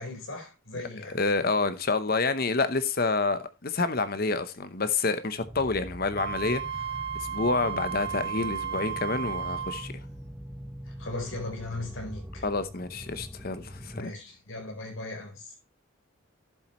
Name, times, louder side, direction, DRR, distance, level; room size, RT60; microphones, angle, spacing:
voice 1, 0.0-1.2 10.8-12.4 13.9-15.5, left 2 dB, 70° left, 4.2 m, -38 dB
voice 2, 1.1-6.6 7.2-9.9 12.4-14.1, left 3 dB, 45° left, 0.8 m, -28 dB
sound 1, 5.4-14.0, equal, 5° right, 1.1 m, -42 dB
Wind instrument woodwind instrument, 6.2-9.9, right 8 dB, 50° right, 1.1 m, -34 dB
12.0 x 7.5 x 3.0 m
head